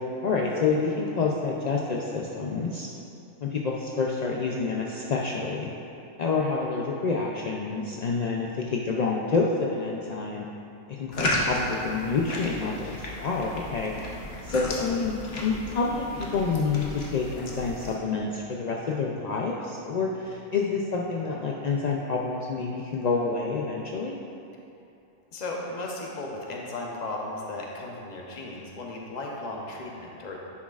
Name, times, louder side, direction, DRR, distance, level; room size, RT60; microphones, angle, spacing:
voice 1, 0.2-2.9 3.4-5.7 6.2-10.5 10.9-13.9 14.4-24.1, left 4 dB, 75° left, -2 dB, 0.3 m, -28 dB
sound 1, 11.1-18.0, left 1 dB, 55° left, 1.1 m, -34 dB
voice 2, 25.3-30.4, left 2 dB, 40° left, -2 dB, 0.8 m, -35 dB
9.7 x 6.1 x 2.4 m, 2.7 s
omnidirectional pair, 1.3 m